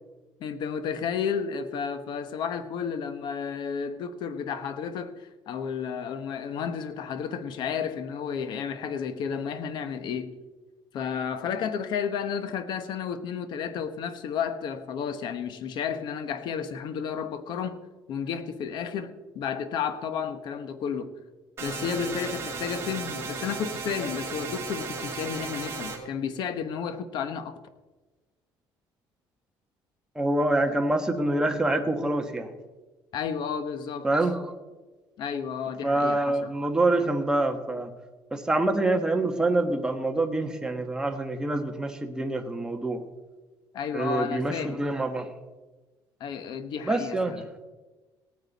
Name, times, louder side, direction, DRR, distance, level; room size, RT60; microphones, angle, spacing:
voice 1, 0.4-10.4 10.9-17.8 18.1-21.2 21.6-27.6 33.1-34.1 35.2-36.5 43.7-44.9 46.2-47.5, left 7 dB, 65° left, 1.1 m, -32 dB
sound 1, 21.6-26.0, right 4 dB, 30° right, 2.9 m, -35 dB
voice 2, 30.1-32.5 34.0-34.4 35.8-37.9 38.3-43.0 43.9-45.3 46.8-47.3, right 2 dB, 10° right, 1.3 m, -26 dB
18.0 x 9.4 x 4.1 m
cardioid pair, 135°, 8 cm